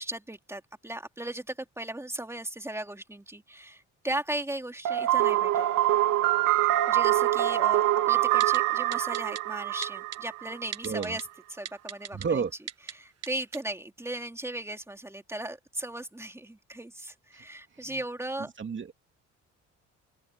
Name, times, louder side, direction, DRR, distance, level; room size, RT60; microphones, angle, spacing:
voice 1, 0.0-5.6 6.9-12.4 12.8-18.5, right 1 dB, 10° right, 3.0 m, -37 dB
sound 1, 4.9-10.7, right 14 dB, 90° right, 1.8 m, -25 dB
Typing, 8.4-8.6 8.9-9.4 9.8-10.2 10.7-11.2 11.7-12.3 12.7-12.9 13.2-13.3 13.5-13.6, right 9 dB, 55° right, 1.5 m, -37 dB
voice 2, 10.8-11.2 12.1-12.5 18.6-18.9, right 6 dB, 40° right, 2.7 m, -30 dB
open air
cardioid pair, 90°, 30 cm